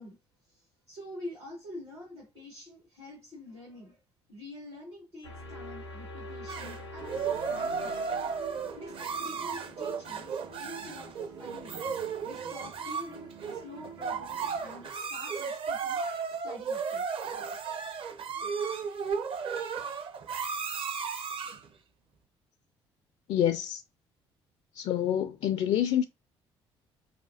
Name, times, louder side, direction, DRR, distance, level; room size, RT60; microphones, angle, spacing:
voice 1, 0.0-4.0 4.3-8.0 8.7-11.8 12.2-17.0, left 1 dB, 80° right, 2.0 m, -47 dB
sound 1, 5.2-11.2, left 1 dB, 85° left, 0.6 m, -46 dB
sound 2, 6.5-21.7, right 6 dB, 40° right, 0.6 m, -34 dB
sound 3, 7.0-14.9, right 4 dB, 60° right, 1.4 m, -48 dB
voice 2, 23.3-23.8 24.7-26.0, left 10 dB, 45° left, 0.4 m, -27 dB
5.7 x 2.3 x 2.6 m
figure-of-eight pair, 50°, 14 cm